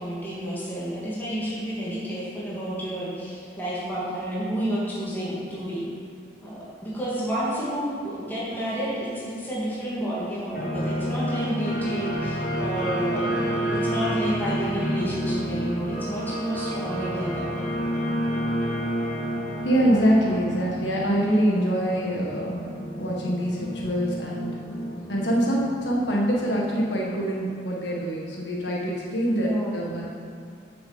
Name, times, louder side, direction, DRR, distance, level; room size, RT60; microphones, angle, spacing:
voice 1, 0.0-5.8 6.4-17.5 29.3-29.9, right 1 dB, 10° left, -8 dB, 2.5 m, -30 dB
sound 1, 10.5-26.9, equal, 45° left, 1.8 m, -30 dB
voice 2, 19.6-22.7 22.9-24.6 25.1-30.1, equal, 70° left, -3 dB, 1.6 m, -24 dB
7.2 x 7.0 x 6.9 m, 2.5 s
head